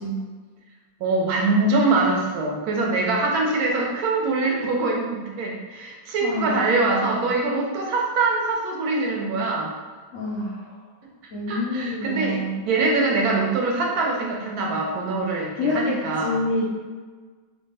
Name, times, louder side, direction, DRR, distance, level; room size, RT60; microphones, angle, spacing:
voice 1, 1.0-9.7 11.5-16.4, right 3 dB, 70° right, -1 dB, 0.9 m, -23 dB
voice 2, 6.2-6.6 10.1-10.7 11.3-12.6 15.6-16.6, left 2 dB, 80° left, -6 dB, 0.7 m, -27 dB
3.2 x 2.8 x 3.3 m, 1.4 s
omnidirectional pair, 2.0 m